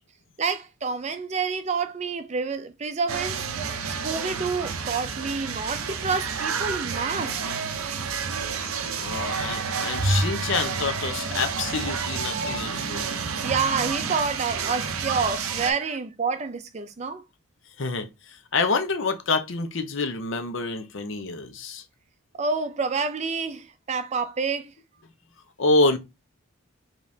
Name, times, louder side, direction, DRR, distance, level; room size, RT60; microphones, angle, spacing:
voice 1, 0.4-3.5 3.8-7.4 12.7-12.8 13.2-17.2 22.4-24.7, right 5 dB, 30° right, 0.4 m, -28 dB
sound 1, 3.1-15.7, right 6 dB, 85° right, 0.6 m, -30 dB
voice 2, 9.0-13.1 17.8-21.8 25.6-26.0, left 3 dB, 65° left, 0.7 m, -27 dB
Bowed string instrument, 10.0-12.4, equal, 15° left, 1.0 m, -30 dB
5.1 x 3.0 x 2.7 m
head